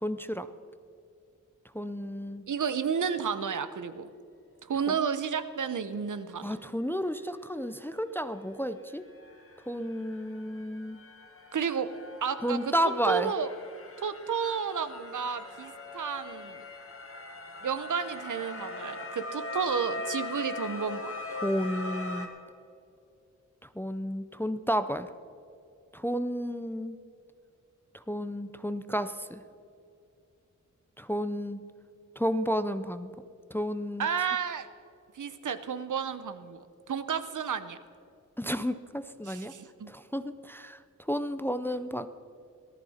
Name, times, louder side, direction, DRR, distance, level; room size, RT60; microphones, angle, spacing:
voice 1, 0.0-0.5 1.7-2.4 4.9-5.0 6.4-9.1 9.7-11.0 12.4-13.3 21.4-22.3 23.8-25.1 25.9-27.0 28.1-29.4 31.0-31.6 32.2-33.1 33.5-34.1 38.4-39.5 39.9-40.8 41.1-42.1, equal, 5° left, 11 dB, 0.5 m, -31 dB
voice 2, 2.5-4.1 4.6-6.5 11.5-11.9 12.2-12.7 13.1-13.5 14.0-16.6 17.6-21.1 34.0-34.7 35.1-37.8 39.2-39.9, right 7 dB, 70° right, 12 dB, 0.8 m, -32 dB
sound 1, 7.7-7.8 8.2-22.3, left 3 dB, 45° left, 1.7 m, -41 dB
18.5 x 13.5 x 4.3 m, 2.5 s
wide cardioid pair, 130°, 31 cm